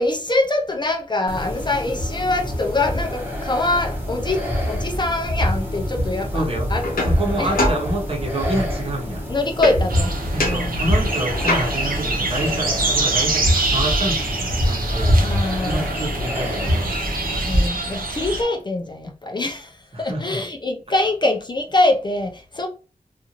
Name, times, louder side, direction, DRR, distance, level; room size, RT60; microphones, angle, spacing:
voice 1, 0.0-4.4 4.7-6.4 6.7-7.1 7.4-7.5 9.3-10.1 10.4-10.8 15.2-16.1 17.4-19.7 20.0-22.7, left 2 dB, 30° left, 0.4 m, -24 dB
sound 1, 1.3-17.7, equal, 15° right, 1.0 m, -25 dB
voice 2, 6.3-6.7 7.0-9.3 10.3-15.2 15.6-17.0 19.9-20.4, right 1 dB, 40° right, 0.9 m, -27 dB
sound 2, 6.8-8.5 9.6-10.1 10.4-12.0 15.3-15.4 15.7-16.7, left 2 dB, 85° left, 0.7 m, -28 dB
sound 3, 9.9-18.4, right 2 dB, 85° right, 0.7 m, -25 dB
2.6 x 2.4 x 2.8 m
wide cardioid pair, 90°, 14 cm